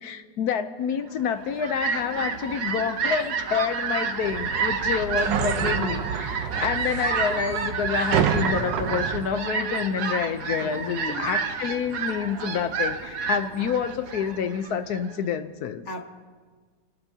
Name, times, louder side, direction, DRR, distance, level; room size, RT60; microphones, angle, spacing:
voice 1, 0.0-15.9, left 7 dB, 65° left, 10 dB, 1.1 m, -28 dB
Fowl, 1.2-15.1, right 5 dB, 65° right, 1.6 m, -30 dB
sound 1, 4.2-9.3, right 7 dB, 80° right, 1.5 m, -28 dB
voice 2, 10.6-11.3 15.9-16.1, left 2 dB, 40° left, 3 dB, 1.8 m, -36 dB
26.5 x 19.0 x 2.8 m, 1.5 s
omnidirectional pair, 1.9 m